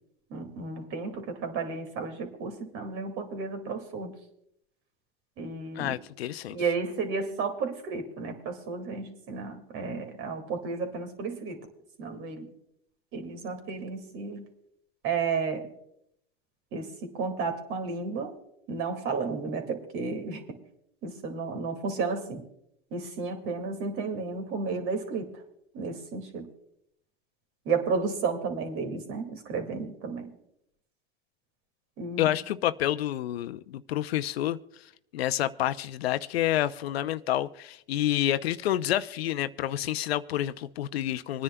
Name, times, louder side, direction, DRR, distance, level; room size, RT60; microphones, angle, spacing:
voice 1, 0.3-4.1 5.4-6.0 6.5-11.7 12.0-12.5 13.1-14.5 15.0-15.7 16.7-18.4 18.7-20.6 21.0-22.5 22.9-25.4 25.7-26.5 27.7-30.3 32.0-32.3, right 4 dB, 45° right, 6 dB, 2.2 m, -32 dB
voice 2, 5.8-6.6 32.2-34.6 35.1-41.4, left 12 dB, 80° left, 12 dB, 0.6 m, -28 dB
26.0 x 9.9 x 2.2 m, 0.75 s
hypercardioid pair, 115°, 30 cm